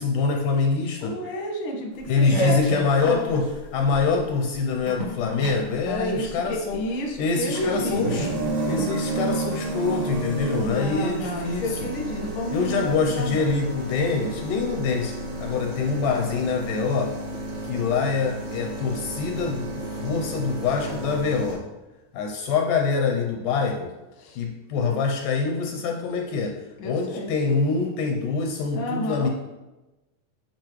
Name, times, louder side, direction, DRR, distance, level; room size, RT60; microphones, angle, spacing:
voice 1, 0.0-1.2 2.1-3.5 3.7-6.8 7.2-8.3 8.7-11.9 12.5-15.1 15.4-17.1 17.6-21.6 22.1-23.9 24.4-26.6 26.8-29.3, left 4 dB, 80° left, 2 dB, 2.0 m, -25 dB
voice 2, 1.0-2.6 5.8-8.4 10.6-13.5 24.2-24.4 26.8-27.3 28.7-29.3, left 1 dB, 60° left, 0 dB, 1.3 m, -31 dB
sound 1, 1.9-21.5, right 2 dB, 55° right, 2.4 m, -32 dB
9.6 x 4.5 x 3.0 m, 1.1 s
omnidirectional pair, 4.0 m